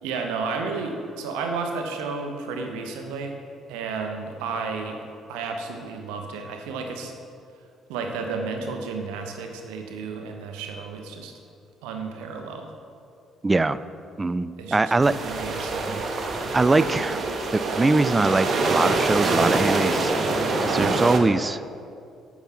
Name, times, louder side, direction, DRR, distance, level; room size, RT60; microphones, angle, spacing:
voice 1, 0.0-3.3 3.7-5.0 5.3-7.1 7.9-11.3 11.8-12.7 14.6-16.0, right 4 dB, 65° right, 4 dB, 0.8 m, -32 dB
voice 2, 13.4-13.8 14.2-15.1 16.5-17.2 17.5-20.1 20.6-21.6, right 3 dB, 20° right, 15 dB, 0.3 m, -22 dB
sound 1, 15.0-21.2, right 3 dB, 40° right, 1.1 m, -25 dB
8.8 x 6.1 x 5.8 m, 2.3 s
figure-of-eight pair, 45°, 0 cm